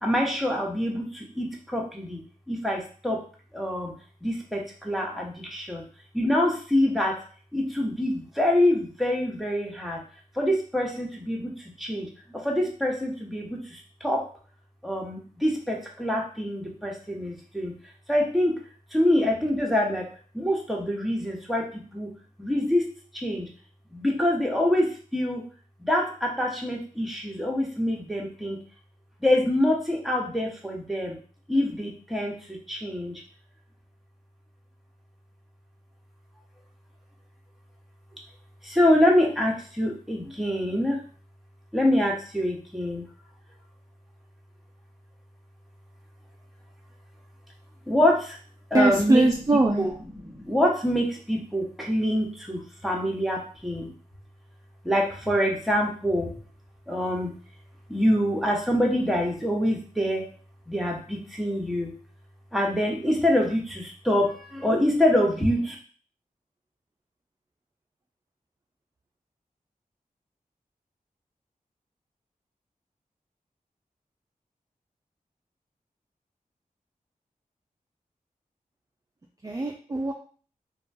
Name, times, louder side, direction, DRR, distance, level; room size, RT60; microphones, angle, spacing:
voice 1, 0.0-2.2 2.5-3.2 3.5-3.9 4.2-5.8 6.1-7.2 7.5-10.0 10.3-14.2 14.8-17.7 18.1-18.6 18.9-20.0 20.3-22.1 22.4-22.9 23.1-23.5 23.9-25.4 25.8-28.6 29.2-31.2 31.5-33.2 38.6-41.0 41.7-43.0 47.9-48.4 48.7-49.3 49.8-49.9 50.3-53.9 54.8-56.3 56.9-57.3 57.9-60.3 60.7-61.9 62.5-65.8, left 1 dB, ahead, -1 dB, 0.8 m, -25 dB
voice 2, 48.7-49.9 79.4-80.1, right 2 dB, 25° right, 1 dB, 0.4 m, -22 dB
2.9 x 2.2 x 2.6 m, 0.42 s
cardioid pair, 45°, 15 cm